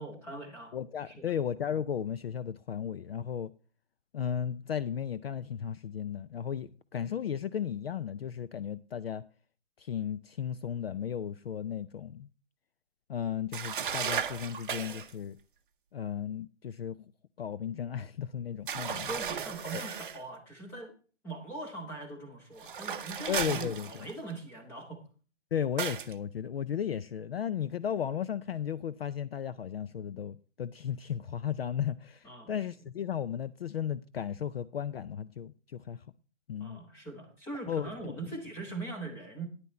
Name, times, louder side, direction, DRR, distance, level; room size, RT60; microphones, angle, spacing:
voice 1, 0.0-0.8 1.0-1.3 18.7-20.9 21.2-25.0 32.2-32.5 36.6-39.5, right 2 dB, 5° left, 1.2 m, -41 dB
voice 2, 0.7-3.5 4.1-9.2 9.8-12.3 13.1-15.4 15.9-16.9 17.4-19.1 19.7-19.8 23.3-24.1 25.5-36.0 36.5-36.8 37.7-37.9, left 8 dB, 55° left, 0.5 m, -35 dB
sound 1, 13.5-15.1 18.7-20.2 22.6-24.3 25.8-26.1, right 7 dB, 45° right, 0.7 m, -35 dB
9.9 x 9.3 x 4.3 m
hypercardioid pair, 165°, 36 cm